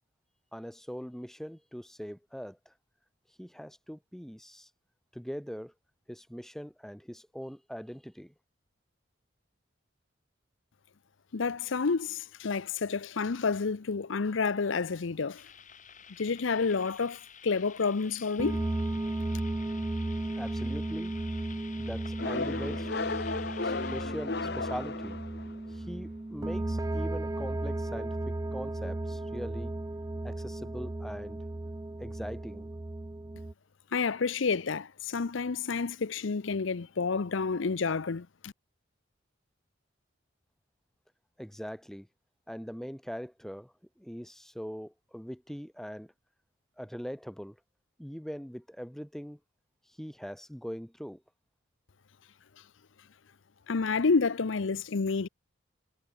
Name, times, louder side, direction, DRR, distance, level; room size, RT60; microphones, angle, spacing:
voice 1, 0.5-2.7 3.4-4.7 5.1-5.7 6.1-8.3 20.4-21.1 21.8-22.9 23.6-25.2 25.7-29.8 30.2-31.4 32.0-32.7 41.4-42.1 42.5-46.1 46.8-47.6 48.0-49.4 50.0-51.2, equal, ahead, 1.1 m, -41 dB
voice 2, 11.3-15.4 16.2-18.6 33.9-38.5 53.7-55.3, left 4 dB, 75° left, 0.6 m, -29 dB
sound 1, 15.4-24.0, left 7 dB, 40° left, 6.7 m, -51 dB
sound 2, 18.4-33.5, right 2 dB, 15° right, 0.4 m, -35 dB
sound 3, 22.2-25.7, left 3 dB, 55° left, 1.0 m, -34 dB
head